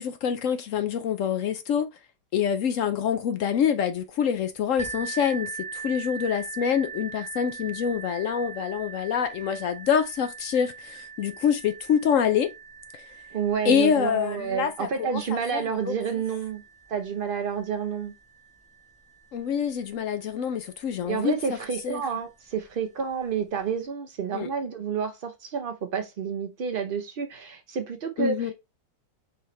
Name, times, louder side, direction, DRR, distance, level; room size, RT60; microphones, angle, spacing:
voice 1, 0.0-1.9 2.3-12.5 13.6-15.6 19.3-21.6 21.8-22.0 24.3-24.5 28.2-28.5, left 8 dB, 70° left, 0.7 m, -26 dB
sound 1, 4.8-20.3 21.1-21.2 21.7-21.8, right 6 dB, 5° left, 0.7 m, -42 dB
voice 2, 13.3-16.6 16.9-18.1 21.0-28.5, right 6 dB, 75° right, 0.5 m, -29 dB
4.1 x 4.1 x 3.1 m
omnidirectional pair, 1.8 m